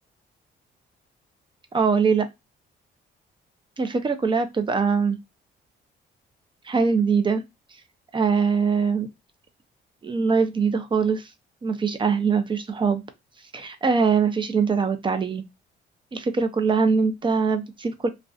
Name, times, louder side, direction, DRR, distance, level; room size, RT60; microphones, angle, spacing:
voice 1, 1.7-2.3 3.8-5.2 6.7-7.4 8.1-9.1 10.0-11.3 11.6-13.0 13.5-15.4 16.1-18.1, right 5 dB, 25° right, 0.4 m, -22 dB
2.5 x 2.1 x 2.3 m
cardioid pair, 90°, 20 cm